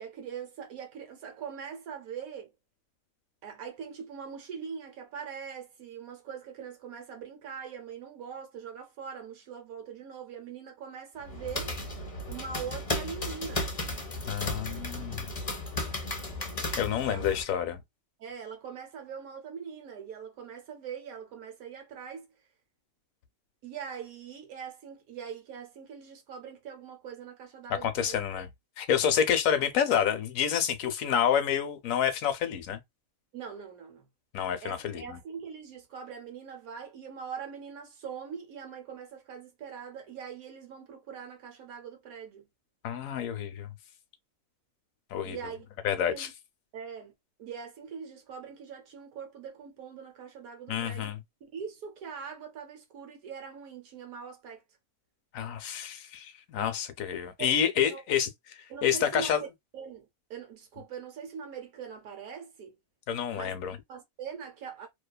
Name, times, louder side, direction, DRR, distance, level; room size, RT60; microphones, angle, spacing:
voice 1, 0.0-2.5 3.4-11.7 12.3-13.7 17.0-17.3 18.2-22.3 23.6-28.2 33.3-34.0 34.6-42.5 45.2-45.6 46.0-46.3 46.7-47.1 47.4-51.1 51.5-54.6 57.4-58.0 58.7-59.5 59.7-62.8 63.3-63.5 63.9-64.9, right 7 dB, 90° right, 1.3 m, -42 dB
sound 1, 11.2-17.4, left 2 dB, 35° left, 0.6 m, -35 dB
voice 2, 14.3-15.3 16.8-17.8 27.7-28.5 28.8-32.8 34.3-34.9 42.8-43.7 45.1-45.4 45.8-46.3 50.7-51.2 55.3-58.3 58.8-59.4 63.1-63.8, left 8 dB, 75° left, 1.0 m, -28 dB
2.7 x 2.2 x 2.2 m
omnidirectional pair, 1.5 m